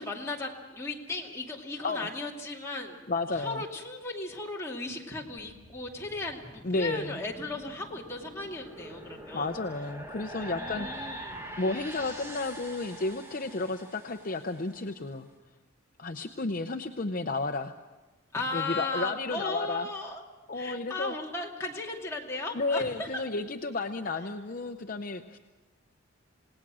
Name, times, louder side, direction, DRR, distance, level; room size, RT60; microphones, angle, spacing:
voice 1, 0.0-3.0 3.3-9.5 10.5-11.5 18.3-20.2 20.5-23.2, left 2 dB, 15° left, -2 dB, 2.6 m, -36 dB
voice 2, 3.1-3.6 6.6-7.2 9.3-11.1 11.6-15.3 16.0-17.7 18.5-19.9 20.5-21.2 22.5-25.4, left 3 dB, 40° left, 6 dB, 0.7 m, -32 dB
sound 1, 5.4-14.7, right 1 dB, 10° right, 1.8 m, -44 dB
28.0 x 18.5 x 6.2 m, 1.2 s
head